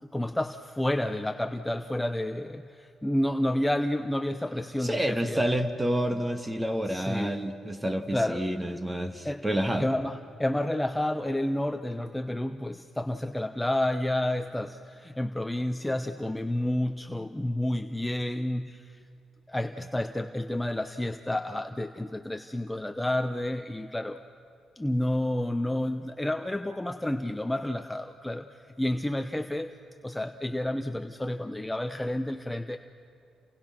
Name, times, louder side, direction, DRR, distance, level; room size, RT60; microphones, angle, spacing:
voice 1, 0.0-5.4 6.9-7.4 8.1-8.7 9.2-9.5 9.8-19.0 19.5-24.2 24.8-29.8 30.0-32.8, left 1 dB, 10° left, 7 dB, 0.8 m, -30 dB
voice 2, 4.8-9.9, equal, 15° right, 7 dB, 1.8 m, -29 dB
29.0 x 27.5 x 6.0 m, 2.5 s
cardioid pair, 90°, 0 cm